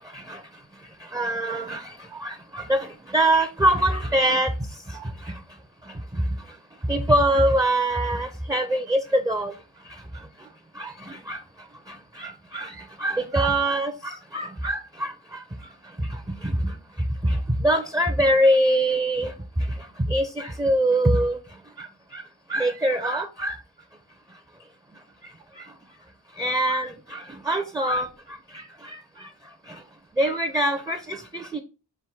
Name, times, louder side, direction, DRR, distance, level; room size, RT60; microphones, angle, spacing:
voice 1, 1.1-1.8 2.2-2.3 2.7-2.8 3.1-4.5 6.9-9.5 10.8-10.9 11.3-11.4 12.5-12.7 13.0-15.1 17.6-19.3 20.1-20.3 20.6-21.4 22.5-23.5 26.4-26.9 27.5-28.1 30.2-31.0 31.5-31.6, right 1 dB, 10° right, 0.4 m, -22 dB
4.6 x 2.6 x 3.5 m
wide cardioid pair, 65°, 43 cm